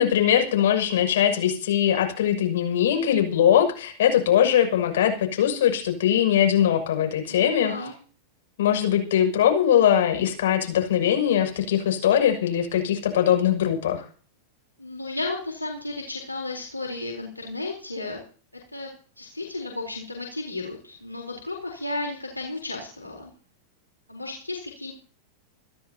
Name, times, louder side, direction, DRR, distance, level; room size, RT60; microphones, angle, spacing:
voice 1, 0.0-7.7 8.6-14.0, left 10 dB, 60° left, 4 dB, 6.4 m, -21 dB
voice 2, 7.3-7.9 14.8-18.2 18.7-18.9 19.2-23.3 24.1-24.9, left 2 dB, 85° left, 0 dB, 3.8 m, -33 dB
28.5 x 12.5 x 2.9 m, 0.40 s
figure-of-eight pair, 90°, 0 cm